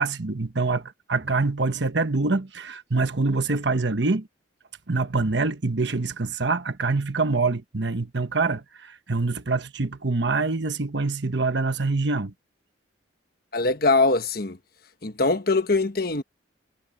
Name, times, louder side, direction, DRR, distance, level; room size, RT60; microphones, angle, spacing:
voice 1, 0.0-4.3 4.9-12.3, right 3 dB, 60° right, 1.2 m, -25 dB
voice 2, 13.5-14.6 15.0-16.2, left 3 dB, 50° left, 1.3 m, -22 dB
head